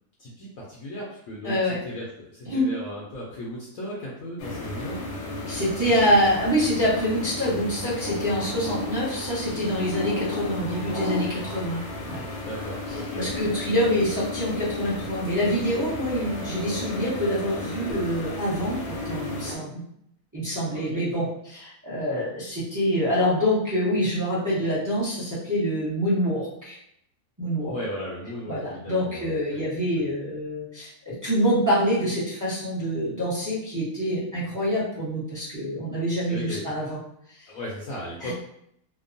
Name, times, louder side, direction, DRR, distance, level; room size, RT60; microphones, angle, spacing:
voice 1, 0.2-5.0 12.4-13.3 20.7-21.0 27.6-29.6 30.0-30.1 36.3-36.6 37.5-38.3, equal, 70° left, -5 dB, 0.9 m, -36 dB
voice 2, 1.4-1.8 2.5-2.7 5.5-12.2 13.2-19.8 20.3-26.8 27.4-27.7 28.5-37.0 38.2-38.3, equal, 20° right, -9 dB, 0.6 m, -26 dB
sound 1, 4.4-19.5, left 2 dB, 90° left, 1.3 m, -34 dB
2.9 x 2.1 x 2.6 m, 0.73 s
omnidirectional pair, 1.7 m